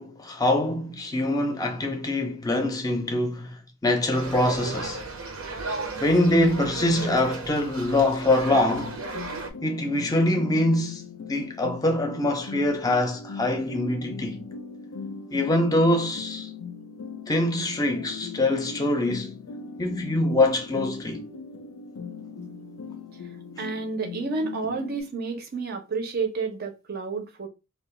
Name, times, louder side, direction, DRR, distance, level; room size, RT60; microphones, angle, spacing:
voice 1, 0.0-5.0 6.0-9.0 9.6-14.4 15.3-16.5 17.3-19.3 19.8-21.2, left 1 dB, 15° left, 0.5 m, -24 dB
sound 1, 4.1-9.5, right 3 dB, 85° right, 0.7 m, -35 dB
sound 2, 8.5-25.0, left 5 dB, 75° left, 0.4 m, -39 dB
voice 2, 23.6-27.5, right 4 dB, 45° right, 0.6 m, -30 dB
2.4 x 2.2 x 3.8 m
head